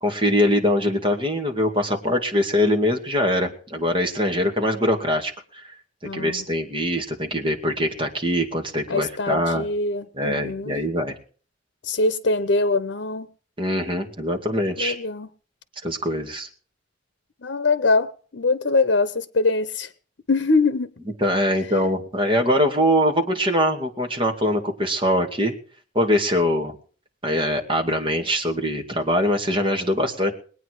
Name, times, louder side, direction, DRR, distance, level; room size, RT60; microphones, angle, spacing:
voice 1, 0.0-5.7 6.0-9.7 10.1-11.1 13.6-15.0 15.8-16.5 21.2-25.5 25.9-26.7 27.2-30.3, equal, 30° right, 2.4 m, -23 dB
voice 2, 6.0-6.4 8.9-10.8 11.8-13.3 14.8-15.3 17.4-19.9 20.3-20.9, left 3 dB, 80° left, 0.8 m, -23 dB
21.5 x 9.1 x 4.8 m
head